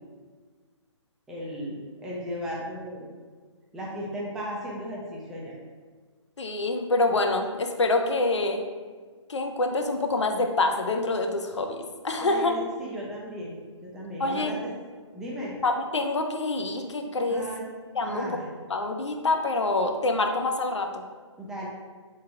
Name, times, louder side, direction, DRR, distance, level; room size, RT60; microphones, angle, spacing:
voice 1, 1.3-3.0 3.7-5.5 12.2-14.7 15.1-15.6 17.3-17.6 18.0-18.4 21.4-21.7, equal, 5° right, -5 dB, 0.3 m, -36 dB
voice 2, 6.4-8.6 9.3-11.8 12.0-12.5 14.2-14.5 15.6-17.4 17.9-18.3 18.7-21.0, left 2 dB, 65° left, 4 dB, 0.5 m, -26 dB
3.3 x 3.2 x 3.5 m, 1.5 s
figure-of-eight pair, 135°, 16 cm